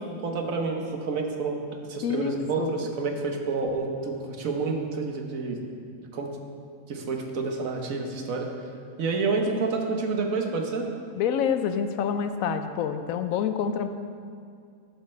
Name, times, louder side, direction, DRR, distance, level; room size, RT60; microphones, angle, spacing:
voice 1, 0.2-1.5 1.9-5.6 6.1-6.3 6.9-8.5 9.0-10.9, right 4 dB, 75° right, 2 dB, 1.4 m, -29 dB
voice 2, 2.0-2.8 11.2-13.9, left 7 dB, 80° left, 9 dB, 1.0 m, -27 dB
11.5 x 7.5 x 3.3 m, 2.3 s
omnidirectional pair, 1.4 m